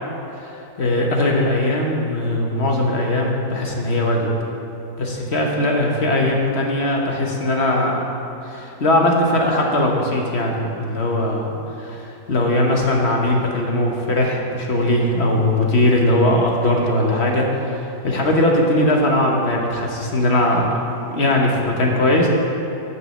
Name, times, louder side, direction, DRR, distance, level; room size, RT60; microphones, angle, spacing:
voice 1, 0.4-4.3 5.0-8.0 8.4-20.7 21.1-22.3, left 1 dB, 45° left, 0 dB, 1.3 m, -20 dB
9.4 x 6.2 x 7.3 m, 2.9 s
omnidirectional pair, 1.7 m